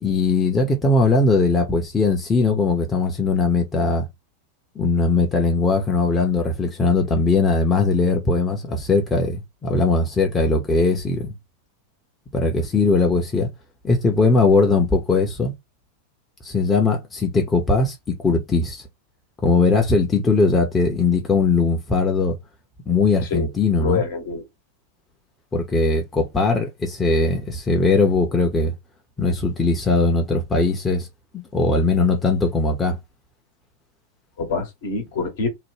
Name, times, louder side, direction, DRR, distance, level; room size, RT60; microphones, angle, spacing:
voice 1, 0.0-4.1 4.8-11.3 12.3-13.5 13.8-15.5 16.4-18.8 19.4-22.4 22.9-24.0 25.5-28.7 29.2-31.1 31.5-33.0, left 3 dB, 15° left, 0.7 m, -20 dB
voice 2, 23.8-24.5 34.4-35.5, left 4 dB, 55° left, 1.0 m, -25 dB
2.9 x 2.1 x 3.1 m
figure-of-eight pair, 90°, 0 cm